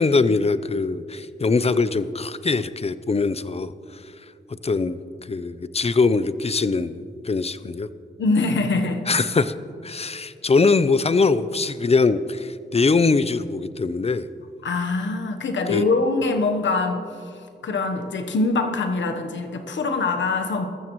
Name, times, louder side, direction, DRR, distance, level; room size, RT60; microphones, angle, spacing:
voice 1, 0.0-3.7 4.6-5.0 5.3-7.9 9.1-9.5 9.8-14.3 15.7-15.8, left 4 dB, 35° left, 14 dB, 0.6 m, -22 dB
voice 2, 8.2-9.0 14.6-17.0 17.6-20.6, left 3 dB, 85° left, 6 dB, 1.1 m, -23 dB
20.5 x 14.0 x 3.1 m, 2.4 s
cardioid pair, 55°, 19 cm